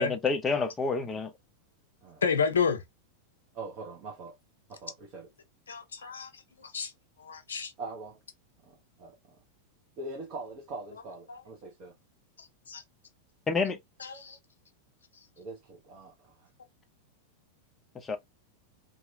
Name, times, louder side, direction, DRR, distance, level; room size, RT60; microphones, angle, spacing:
voice 1, 0.0-1.3 13.5-13.8 17.9-18.2, left 4 dB, 20° left, 0.5 m, -28 dB
voice 2, 2.2-2.8 5.7-6.9 7.2-7.7 11.3-11.4 12.4-12.8 14.0-14.4, left 6 dB, 70° left, 0.6 m, -31 dB
voice 3, 3.5-4.3 4.7-5.3 7.8-8.2 8.6-9.4 10.0-11.9 15.4-16.5, right 3 dB, 40° right, 0.8 m, -43 dB
2.8 x 2.3 x 2.5 m
figure-of-eight pair, 90°, 0 cm